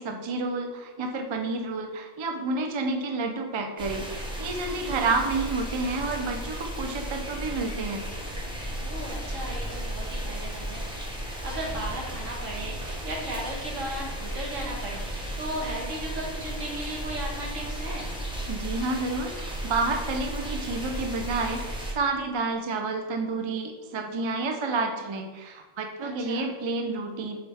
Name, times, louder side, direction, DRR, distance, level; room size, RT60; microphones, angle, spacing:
voice 1, 0.0-8.0 18.5-27.4, right 3 dB, 45° right, 3 dB, 0.3 m, -30 dB
sound 1, 3.8-21.9, equal, 5° right, 0.8 m, -34 dB
voice 2, 4.8-5.1 8.8-18.2 26.0-26.5, right 1 dB, 75° right, -2 dB, 1.7 m, -36 dB
7.8 x 3.5 x 3.5 m, 1.2 s
omnidirectional pair, 1.3 m